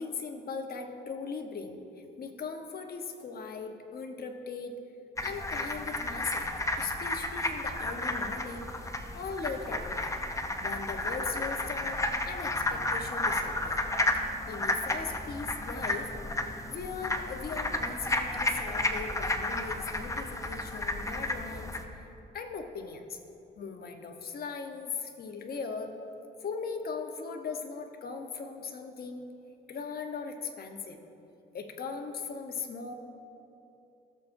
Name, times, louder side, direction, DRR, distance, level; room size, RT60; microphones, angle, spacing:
voice 1, 0.0-1.8 2.2-4.8 5.2-8.9 9.1-10.1 10.6-13.8 14.5-16.1 16.6-23.2 23.6-25.9 26.4-29.2 29.7-31.0 31.5-32.9, left 5 dB, 50° left, 5 dB, 1.0 m, -39 dB
sound 1, 5.2-21.8, left 2 dB, 15° left, 0.7 m, -32 dB
17.0 x 7.0 x 2.6 m, 2.9 s
cardioid pair, 90°, 20 cm